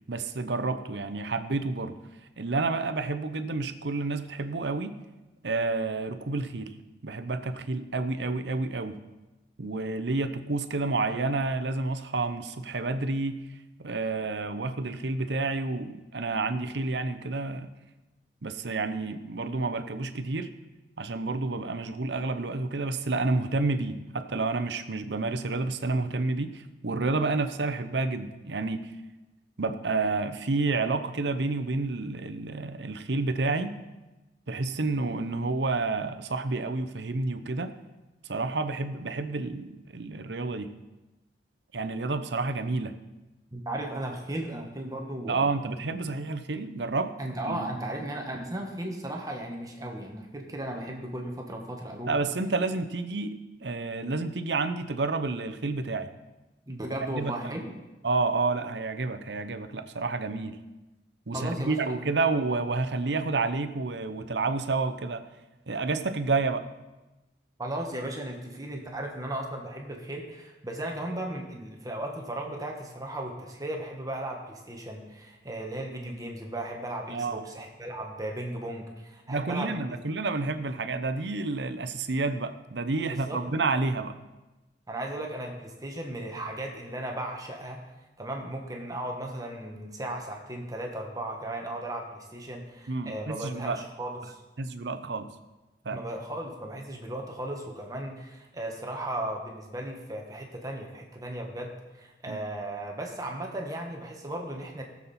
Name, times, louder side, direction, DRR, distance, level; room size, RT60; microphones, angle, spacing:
voice 1, 0.1-1.9 2.4-5.0 5.4-6.7 7.0-9.0 9.6-13.4 13.8-17.7 18.4-20.5 21.0-28.9 29.6-33.8 34.5-37.7 38.3-40.7 41.7-42.9 45.3-47.2 47.5-47.7 52.1-56.1 57.1-57.3 58.0-60.6 61.3-65.2 65.7-66.6 77.1-77.4 79.3-84.1 92.9-93.8 94.6-95.3 95.8-96.0 102.3-102.4, right 3 dB, 75° right, 9 dB, 0.8 m, -29 dB
voice 2, 43.5-45.4 45.9-46.0 47.2-52.3 56.7-57.7 61.3-61.9 62.2-62.3 67.6-79.8 83.1-83.4 84.9-87.8 88.2-94.4 95.9-104.8, right 1 dB, 20° right, 1 dB, 1.4 m, -36 dB
19.0 x 7.3 x 4.3 m, 1.1 s
head